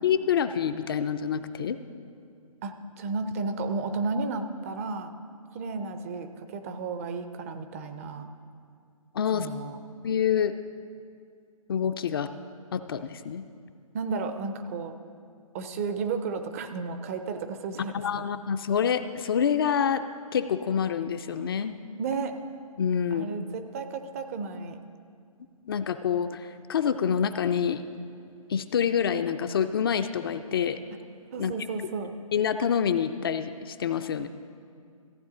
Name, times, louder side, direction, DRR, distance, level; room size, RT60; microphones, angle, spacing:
voice 1, 0.0-1.8 9.1-9.5 10.0-10.5 11.7-12.3 12.7-13.4 17.9-20.0 20.3-21.7 22.8-23.3 25.7-27.8 28.5-30.8 31.4-31.5 32.3-34.3, left 8 dB, 40° left, 9 dB, 0.4 m, -27 dB
voice 2, 2.6-5.1 5.5-8.3 9.3-9.8 13.9-14.9 15.5-17.9 22.0-22.3 23.1-24.8 31.3-32.1, right 4 dB, 25° right, 8 dB, 0.4 m, -33 dB
15.0 x 8.6 x 3.8 m, 2.3 s
figure-of-eight pair, 140°, 18 cm